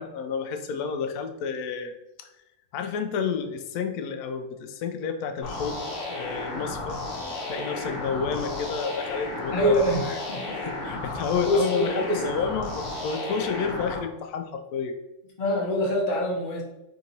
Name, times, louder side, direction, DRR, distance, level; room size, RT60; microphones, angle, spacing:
voice 1, 0.0-1.9 2.2-2.3 2.7-7.0 7.5-9.8 10.6-14.9, left 6 dB, 80° left, 7 dB, 1.1 m, -30 dB
sound 1, 5.4-14.0, left 2 dB, 55° left, 1.2 m, -33 dB
voice 2, 9.5-10.6 11.4-12.2 15.4-16.6, equal, 40° left, -2 dB, 0.9 m, -25 dB
3.6 x 2.9 x 3.9 m, 0.95 s
omnidirectional pair, 1.6 m